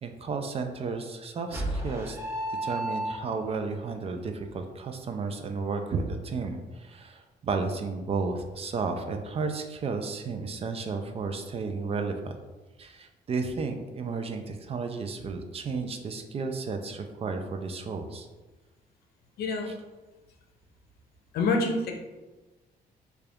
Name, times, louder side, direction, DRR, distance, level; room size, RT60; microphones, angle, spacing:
voice 1, 0.0-2.2 2.6-12.4 12.8-18.3 19.6-19.8, right 4 dB, 35° right, 5 dB, 0.4 m, -33 dB
sound 1, 1.5-3.6, right 1 dB, 15° right, 1.4 m, -32 dB
voice 2, 19.4-19.7 21.3-21.9, left 3 dB, 70° left, 2 dB, 0.6 m, -26 dB
3.8 x 2.3 x 3.4 m, 1.2 s
cardioid pair, 115°, 17 cm